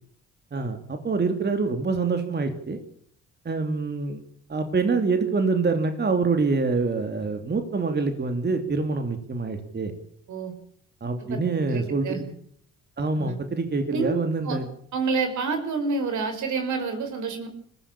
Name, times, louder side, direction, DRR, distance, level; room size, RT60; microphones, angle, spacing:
voice 1, 0.5-2.8 3.4-4.2 4.5-9.9 11.0-12.2 13.0-14.6, right 4 dB, 35° right, 6 dB, 3.0 m, -25 dB
voice 2, 11.7-12.2 13.2-13.4 13.9-14.1 14.4-14.6 14.9-17.5, right 4 dB, 75° right, 7 dB, 5.7 m, -28 dB
21.0 x 16.0 x 8.9 m, 0.62 s
cardioid pair, 90°, 30 cm